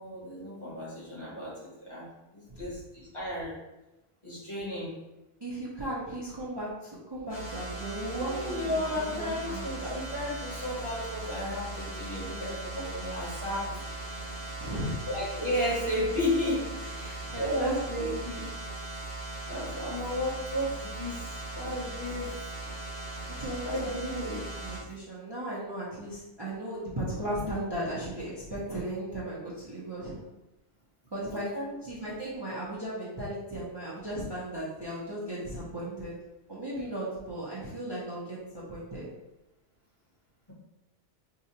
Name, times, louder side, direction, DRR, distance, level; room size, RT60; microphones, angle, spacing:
voice 1, 0.0-2.1 2.3-3.6 4.2-5.0 8.2-13.8 15.1-18.4 19.5-21.2 21.5-22.3 23.6-24.4 31.2-31.8, left 1 dB, 30° left, -7 dB, 1.1 m, -33 dB
voice 2, 5.4-8.8 9.1-9.8 14.6-15.0 16.9-18.2 23.3-24.2 24.6-29.4 29.6-30.1 31.1-31.5 31.8-36.1 36.5-39.1, right 1 dB, 25° right, -8 dB, 0.7 m, -36 dB
sound 1, 7.3-24.8, right 2 dB, 60° left, 1.5 m, -39 dB
4.8 x 2.3 x 2.8 m, 1.0 s
omnidirectional pair, 1.2 m